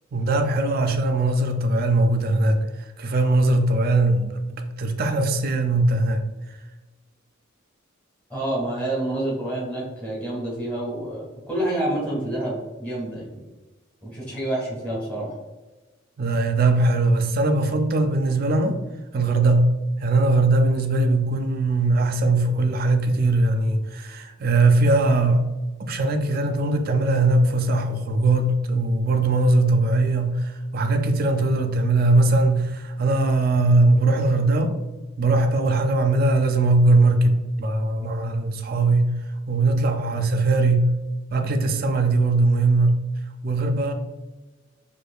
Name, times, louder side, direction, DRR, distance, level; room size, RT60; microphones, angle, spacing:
voice 1, 0.1-6.3 16.2-18.8 19.1-25.5 25.8-34.7 35.2-39.2 39.5-41.0 41.3-43.1 43.4-43.9, right 2 dB, 50° right, 0.4 m, -20 dB
voice 2, 8.3-13.4 14.0-15.4, right 1 dB, 5° left, 1.4 m, -28 dB
4.5 x 2.5 x 2.3 m
head